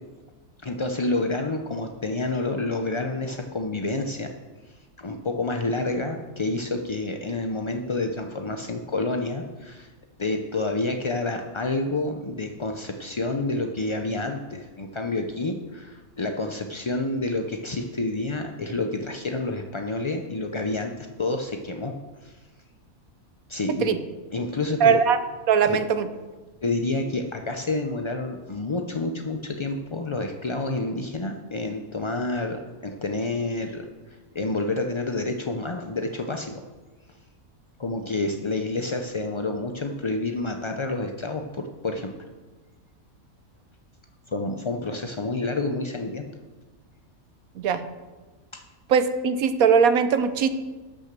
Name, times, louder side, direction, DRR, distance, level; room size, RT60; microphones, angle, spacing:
voice 1, 0.6-4.3 5.0-9.9 10.2-21.9 22.2-22.3 23.5-24.0 24.3-24.9 25.7-25.8 26.6-36.5 37.8-42.1 44.3-46.3 48.5-48.6, left 2 dB, 50° left, 4 dB, 0.3 m, -29 dB
voice 2, 24.8-25.2 25.5-26.1 47.6-47.8 48.9-50.5, right 6 dB, 75° right, 11 dB, 1.2 m, -20 dB
12.0 x 6.2 x 6.7 m, 1.2 s
omnidirectional pair, 1.5 m